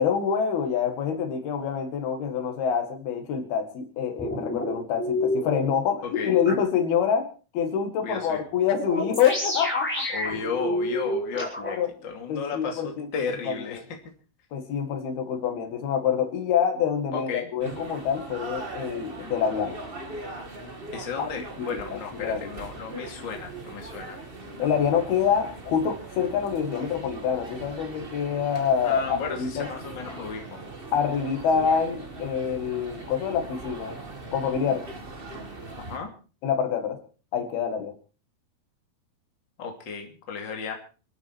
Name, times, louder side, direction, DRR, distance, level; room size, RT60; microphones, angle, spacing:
voice 1, 0.0-7.3 7.5-10.2 11.7-11.9 12.3-13.8 14.5-19.8 21.2-21.3 21.6-22.5 24.6-29.7 30.9-34.0 34.3-34.9 36.4-37.0 37.3-37.9, left 7 dB, 85° left, 6 dB, 4.0 m, -26 dB
sound 1, 4.2-5.6 6.4-6.5 8.8-11.7, left 1 dB, 5° left, 4.3 m, -29 dB
voice 2, 6.0-6.3 8.0-8.4 10.1-13.8 17.1-17.5 20.9-24.2 28.8-30.6 35.9-36.1 39.6-40.8, left 5 dB, 30° left, 3 dB, 2.9 m, -34 dB
sound 2, 17.6-36.0, right 2 dB, 30° right, 1.0 m, -40 dB
27.5 x 9.4 x 4.5 m, 0.37 s
omnidirectional pair, 4.3 m